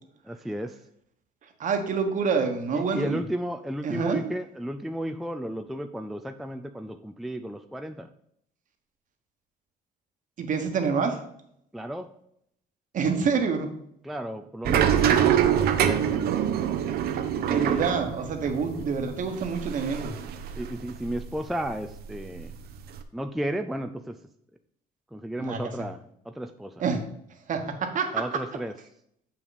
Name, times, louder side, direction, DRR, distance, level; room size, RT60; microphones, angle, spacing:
voice 1, 0.2-0.8 2.7-8.1 11.7-12.1 14.0-16.3 17.3-17.9 20.6-22.5 23.1-24.2 25.1-26.0 26.3-26.8 28.1-28.7, equal, ahead, 7 dB, 0.4 m, -33 dB
voice 2, 1.6-3.2 3.8-4.2 10.4-11.2 12.9-13.7 17.4-20.2 25.4-25.6 26.8-27.0 27.5-28.4, right 5 dB, 50° right, 6 dB, 1.3 m, -27 dB
sound 1, 14.6-21.4 21.7-23.0, right 9 dB, 70° right, 0.7 m, -25 dB
7.0 x 5.8 x 4.0 m, 0.73 s
cardioid pair, 110°, 17 cm